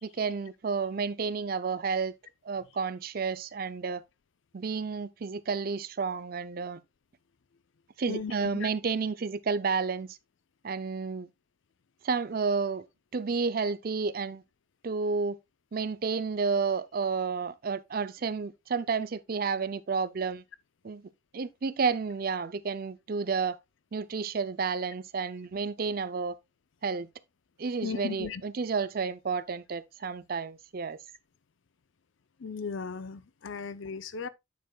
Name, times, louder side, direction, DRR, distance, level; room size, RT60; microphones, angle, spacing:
voice 1, 0.0-2.1 2.4-4.0 4.5-6.8 8.0-10.2 10.6-11.3 12.0-12.9 13.1-14.4 14.8-15.4 15.7-20.4 20.8-21.0 21.3-23.6 23.9-26.3 26.8-27.1 27.6-31.0, right 5 dB, 45° right, 0.4 m, -31 dB
voice 2, 8.1-8.7 27.8-28.4 32.4-34.3, left 5 dB, 70° left, 0.5 m, -36 dB
9.2 x 6.9 x 2.3 m
head